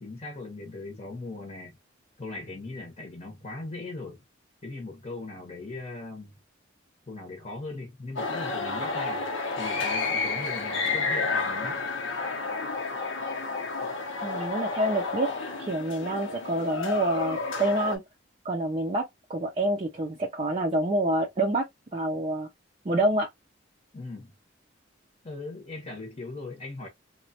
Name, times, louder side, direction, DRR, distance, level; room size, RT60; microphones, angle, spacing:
voice 1, 0.0-1.8 2.2-4.2 4.6-6.3 7.1-9.3 9.6-11.8 23.9-24.3 25.2-26.9, left 2 dB, 35° left, 0.8 m, -39 dB
sound 1, 8.2-18.0, left 4 dB, 85° left, 0.8 m, -30 dB
voice 2, 14.2-18.0 18.4-19.0 19.3-21.6 21.9-22.5 22.8-23.3, right 1 dB, 30° right, 0.5 m, -27 dB
3.0 x 2.1 x 2.7 m
head